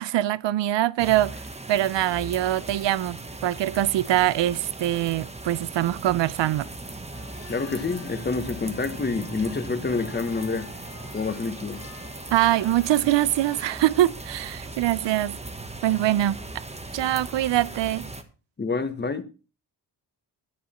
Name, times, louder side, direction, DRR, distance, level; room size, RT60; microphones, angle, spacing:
voice 1, 0.0-1.4 1.7-6.7 12.3-15.4 15.8-16.4 16.9-18.1, right 14 dB, 75° right, 0.6 m, -23 dB
sound 1, 1.0-18.2, right 2 dB, 15° right, 1.2 m, -38 dB
sound 2, 7.1-13.8, left 8 dB, 85° left, 1.9 m, -47 dB
voice 2, 7.5-10.7 11.1-11.8 18.6-19.2, left 4 dB, 25° left, 1.1 m, -28 dB
10.5 x 9.5 x 4.3 m
wide cardioid pair, 135°, 43 cm